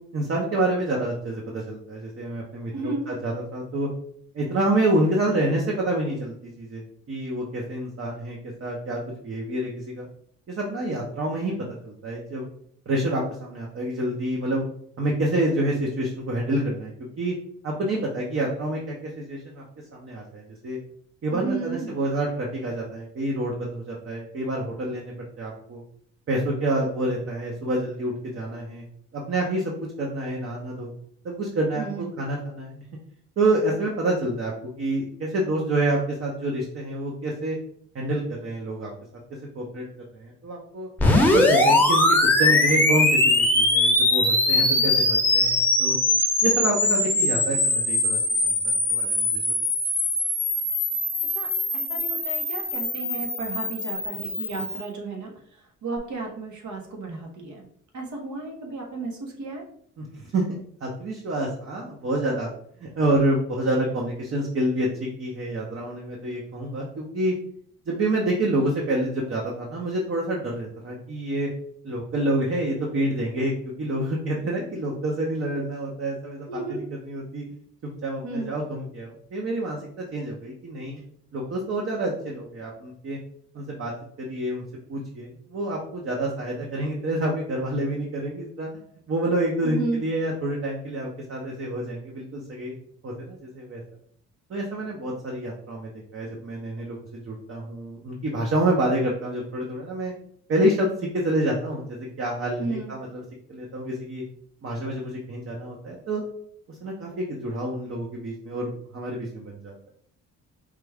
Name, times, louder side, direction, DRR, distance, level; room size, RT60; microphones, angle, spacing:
voice 1, 0.1-3.9 4.3-10.1 10.5-11.5 11.8-12.5 12.9-14.6 15.0-16.9 17.2-17.3 17.6-19.6 19.9-20.8 21.2-25.8 26.3-28.8 29.1-29.7 30.0-30.9 31.2-32.8 33.4-37.6 37.9-38.9 39.5-39.8 40.1-40.9 41.3-46.0 46.4-49.5 60.0-62.5 62.8-67.3 67.9-71.5 71.8-77.4 77.8-81.0 81.3-83.2 83.5-83.9 84.2-84.6 84.9-88.7 89.1-92.7 93.0-93.8 94.5-100.1 100.5-103.2 103.5-104.2 104.6-106.2 106.7-109.7, right 1 dB, 45° right, -2 dB, 0.9 m, -28 dB
voice 2, 2.7-3.1 21.3-22.0 31.8-32.1 41.7-41.8 44.7-44.9 51.3-57.7 57.9-59.6 76.5-76.8 78.2-78.6 89.6-90.0 102.6-102.9, right 3 dB, 70° right, 1 dB, 1.2 m, -33 dB
sound 1, 41.0-54.8, left 2 dB, 5° left, 0.8 m, -22 dB
4.9 x 2.3 x 3.5 m, 0.64 s
cardioid pair, 90°, 30 cm